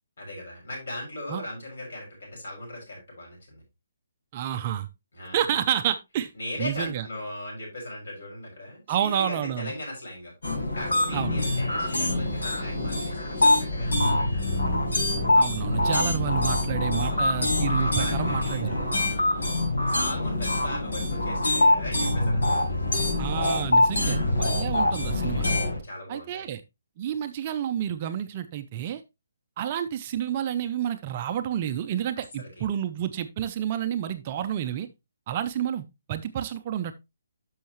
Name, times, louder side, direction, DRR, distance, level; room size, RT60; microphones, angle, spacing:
voice 1, 0.2-3.6 5.1-5.6 6.3-10.3 10.7-14.6 17.1-17.3 17.8-23.0 24.0-24.4 25.8-26.5 32.4-32.6, left 1 dB, 55° left, -1 dB, 6.5 m, -39 dB
voice 2, 4.3-4.9 5.3-6.3 6.6-7.1 8.9-9.7 11.1-11.4 15.3-18.8 23.2-25.5 26.1-26.6 27.0-29.0 29.6-34.9 35.3-36.9, right 10 dB, 20° right, 9 dB, 0.4 m, -29 dB
sound 1, 10.4-25.8, left 2 dB, 90° left, 4.6 m, -24 dB
10.5 x 6.3 x 3.0 m, 0.23 s
hypercardioid pair, 180°, 0 cm